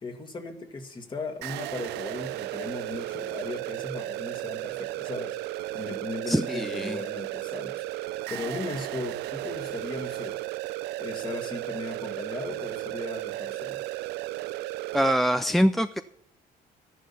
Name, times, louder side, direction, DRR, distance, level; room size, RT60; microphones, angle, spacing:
voice 1, 0.0-5.4 5.7-7.8 8.3-10.4 11.0-13.8, left 3 dB, 30° left, 5 dB, 2.0 m, -37 dB
sound 1, 1.4-15.1, right 16 dB, 80° right, 0.5 m, -34 dB
voice 2, 6.3-7.0 14.9-16.0, equal, ahead, 9 dB, 0.4 m, -24 dB
12.5 x 11.5 x 5.6 m, 0.78 s
cardioid pair, 110°, 17 cm